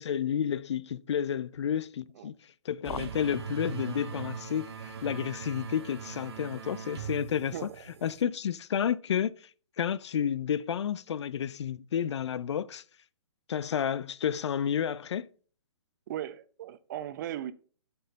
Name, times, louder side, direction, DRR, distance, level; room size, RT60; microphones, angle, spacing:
voice 1, 0.0-2.3 2.7-7.7 8.0-9.5 9.8-12.8 13.5-15.3, left 8 dB, 65° left, 0.5 m, -31 dB
sound 1, 2.8-8.2, right 7 dB, 60° right, 1.3 m, -40 dB
voice 2, 7.5-8.0 16.1-17.5, right 12 dB, 40° right, 0.6 m, -38 dB
12.0 x 4.5 x 4.0 m
hypercardioid pair, 140°, 16 cm